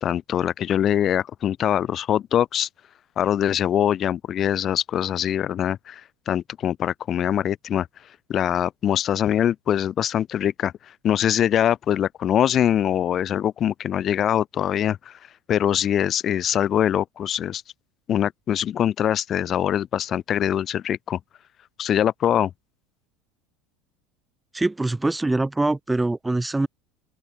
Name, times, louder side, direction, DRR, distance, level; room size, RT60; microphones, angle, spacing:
voice 1, 0.0-2.7 3.2-6.0 6.3-7.9 8.3-10.7 11.0-15.1 15.5-17.6 18.1-21.2 21.8-22.5, left 10 dB, 40° left, 1.2 m, -23 dB
voice 2, 24.5-26.7, right 2 dB, 10° right, 2.3 m, -23 dB
open air
hypercardioid pair, 75°, 0 cm